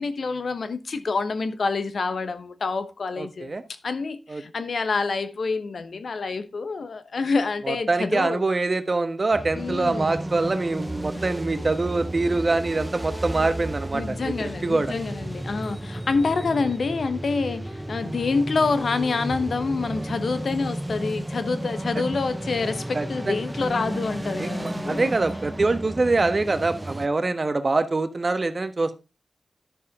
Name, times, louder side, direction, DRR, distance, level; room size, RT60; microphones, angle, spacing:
voice 1, 0.0-3.5 3.8-8.4 9.5-10.2 13.9-25.1 27.2-27.3, left 4 dB, 70° left, 1.0 m, -27 dB
voice 2, 3.2-3.6 4.3-4.4 7.6-14.9 22.9-23.4 24.4-29.0, right 3 dB, 45° right, 1.2 m, -24 dB
sound 1, 9.3-27.1, right 1 dB, 15° right, 0.7 m, -33 dB
11.0 x 6.8 x 3.6 m
cardioid pair, 50°, 0 cm